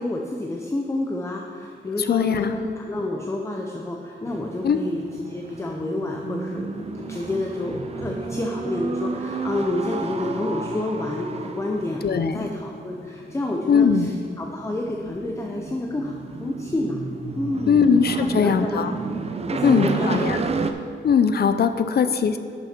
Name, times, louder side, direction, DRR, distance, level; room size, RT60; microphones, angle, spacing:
voice 1, 0.0-17.0 17.4-17.8 18.2-18.9 19.5-20.3, left 2 dB, 15° left, 0 dB, 0.6 m, -29 dB
voice 2, 2.0-2.5 4.6-4.8 12.0-12.5 13.7-14.1 17.7-18.9 19.6-20.4 21.0-22.4, left 6 dB, 55° left, 10 dB, 0.5 m, -20 dB
sound 1, 4.3-20.7, right 4 dB, 30° right, 0.5 m, -32 dB
11.0 x 6.3 x 4.4 m, 2.3 s
wide cardioid pair, 150°, 19 cm